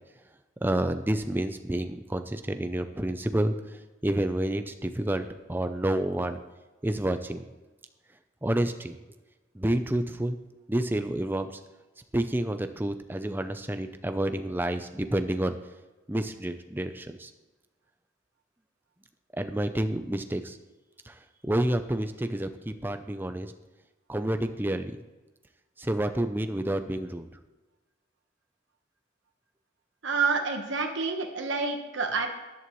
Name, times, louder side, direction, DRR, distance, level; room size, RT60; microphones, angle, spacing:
voice 1, 0.6-3.5 4.0-6.4 6.8-7.4 8.4-9.0 9.5-10.4 10.7-11.5 12.1-15.5 16.1-17.3 19.3-20.6 21.1-21.2 21.4-23.5 24.1-24.9 25.8-27.3, right 1 dB, 10° right, 8 dB, 0.5 m, -29 dB
voice 2, 30.0-32.3, right 4 dB, 65° right, 3 dB, 1.2 m, -28 dB
13.0 x 11.0 x 3.1 m, 1.2 s
head